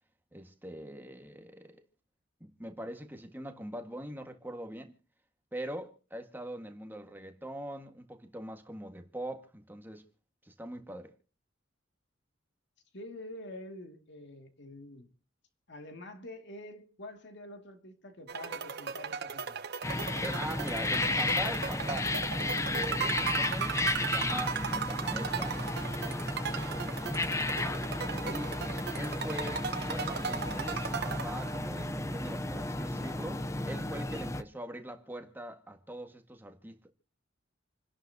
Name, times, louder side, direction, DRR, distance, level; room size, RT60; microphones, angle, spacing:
voice 1, 0.3-1.8 2.4-4.9 5.5-10.0 10.4-11.1 20.2-22.1 22.7-25.6 28.2-28.5 28.9-36.9, right 1 dB, 10° right, 1.7 m, -42 dB
voice 2, 12.9-15.1 15.7-19.6, left 1 dB, 60° left, 2.4 m, -47 dB
sound 1, 18.3-31.9, right 6 dB, 55° right, 0.9 m, -37 dB
sound 2, 19.8-34.4, left 2 dB, 15° left, 0.7 m, -33 dB
28.5 x 11.0 x 2.8 m
head